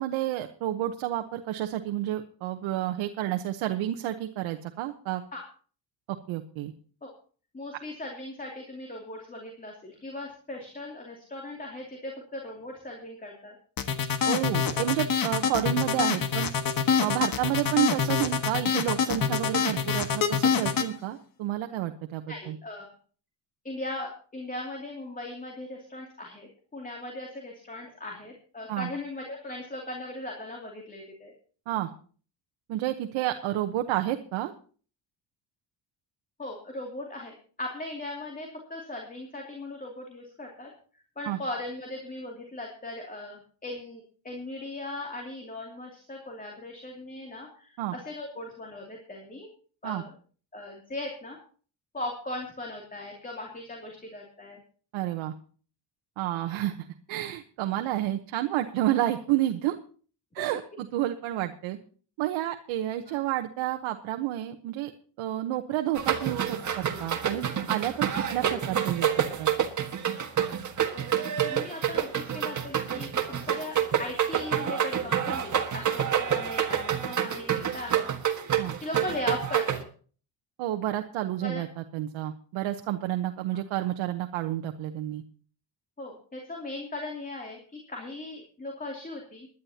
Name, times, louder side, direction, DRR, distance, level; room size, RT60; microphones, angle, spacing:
voice 1, 0.0-5.2 6.1-6.7 14.3-16.5 17.0-22.6 28.7-28.9 31.7-31.9 32.7-34.5 41.2-41.4 47.8-47.9 49.8-50.0 54.9-55.3 56.2-56.8 57.1-59.8 60.3-61.8 62.2-64.9 65.2-69.1 69.4-69.5 78.6-78.7 80.6-85.2, right 13 dB, 85° right, 5 dB, 1.0 m, -30 dB
voice 2, 7.5-13.6 22.3-22.9 23.6-31.3 36.4-40.7 41.2-49.5 49.8-50.1 50.5-51.4 51.9-54.6 63.1-63.2 70.9-73.1 73.4-78.1 78.8-79.8 81.4-81.6 86.0-89.5, left 2 dB, 20° left, 0 dB, 2.7 m, -38 dB
sound 1, 13.8-20.9, left 7 dB, 45° left, 1.5 m, -25 dB
sound 2, 65.9-79.8, right 9 dB, 40° right, 1.7 m, -28 dB
21.0 x 11.0 x 2.9 m, 0.42 s
cardioid pair, 105°, 46 cm